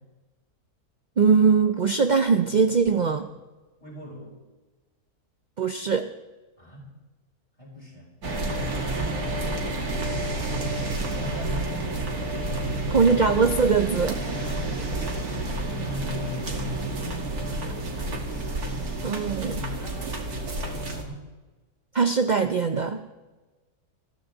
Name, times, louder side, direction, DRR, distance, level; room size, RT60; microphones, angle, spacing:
voice 1, 1.2-3.3 5.6-6.1 12.9-14.7 19.0-19.6 21.9-23.1, right 5 dB, 50° right, 8 dB, 0.5 m, -21 dB
voice 2, 3.8-4.4 6.6-6.9 7.6-8.1 8.8-10.1 10.5-11.8 12.5-13.1 15.8-18.2 19.4-21.2, left 1 dB, 20° left, -4 dB, 7.5 m, -41 dB
sound 1, 8.2-21.0, right 2 dB, 75° right, 2.7 m, -30 dB
20.5 x 15.0 x 4.0 m, 1.2 s
omnidirectional pair, 1.6 m